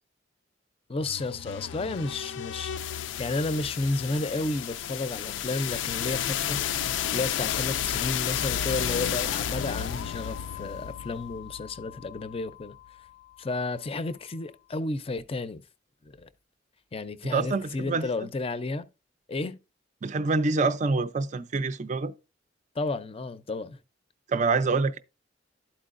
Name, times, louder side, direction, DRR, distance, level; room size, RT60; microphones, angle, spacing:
voice 1, 0.9-2.8 3.2-6.6 7.1-12.8 13.4-15.6 16.0-16.3 16.9-18.9 19.3-19.6 22.7-23.8, left 3 dB, 30° left, 0.5 m, -32 dB
sound 1, 1.0-12.9, left 9 dB, 85° left, 0.4 m, -32 dB
voice 2, 17.3-18.1 20.0-22.1 24.3-25.0, right 3 dB, 40° right, 0.4 m, -26 dB
12.0 x 4.4 x 2.5 m
head